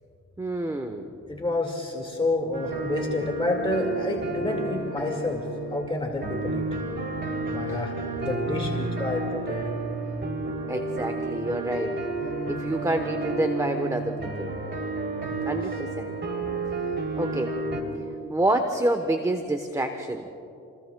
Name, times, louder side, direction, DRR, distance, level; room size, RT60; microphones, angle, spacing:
voice 1, 0.4-1.1 7.7-7.8 10.7-11.9 12.5-14.5 15.5-16.1 17.2-17.6 18.3-20.3, right 1 dB, 10° right, 6 dB, 1.0 m, -28 dB
voice 2, 1.3-6.6 7.5-9.7 15.3-15.6, left 2 dB, 20° left, 0 dB, 2.1 m, -29 dB
sound 1, 2.5-17.8, right 2 dB, 40° right, 3.2 m, -31 dB
30.0 x 20.5 x 2.3 m, 2.8 s
cardioid pair, 90°, 30 cm